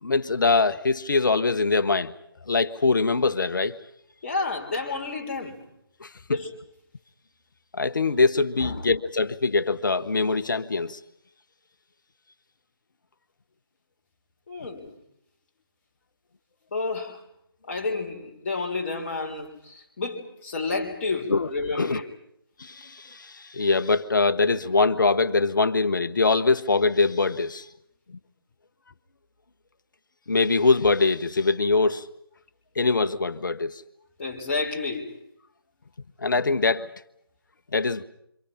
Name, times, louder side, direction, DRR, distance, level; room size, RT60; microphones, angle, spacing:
voice 1, 0.0-2.1 2.5-3.8 6.0-6.1 7.7-11.0 21.3-21.5 21.7-22.0 22.6-27.6 28.1-28.2 30.3-32.1 32.8-33.8 36.2-36.9 37.7-38.0, left 3 dB, 55° left, 1.3 m, -23 dB
voice 2, 4.2-5.6 6.3-6.6 8.6-8.8 14.5-14.9 16.7-17.2 17.7-22.1 34.2-35.2, left 3 dB, 30° left, 3.7 m, -30 dB
29.5 x 26.5 x 5.7 m
figure-of-eight pair, 155°, 13 cm